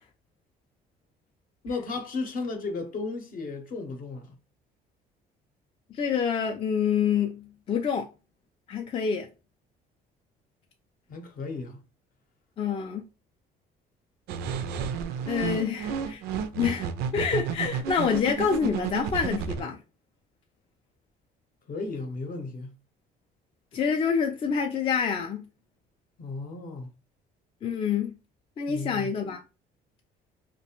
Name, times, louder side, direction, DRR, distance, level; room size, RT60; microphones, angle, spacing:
voice 1, 1.6-4.4 11.1-11.8 21.7-22.7 26.2-26.9 28.7-29.1, left 3 dB, 55° left, 0.7 m, -34 dB
voice 2, 5.9-8.1 8.7-9.3 12.6-13.0 15.3-16.2 16.5-16.9 17.1-19.8 23.7-25.5 27.6-28.2 28.6-29.4, left 6 dB, 35° left, 0.3 m, -27 dB
sound 1, 14.3-19.6, right 7 dB, 75° right, 0.4 m, -31 dB
2.3 x 2.1 x 2.9 m
cardioid pair, 110°, 17 cm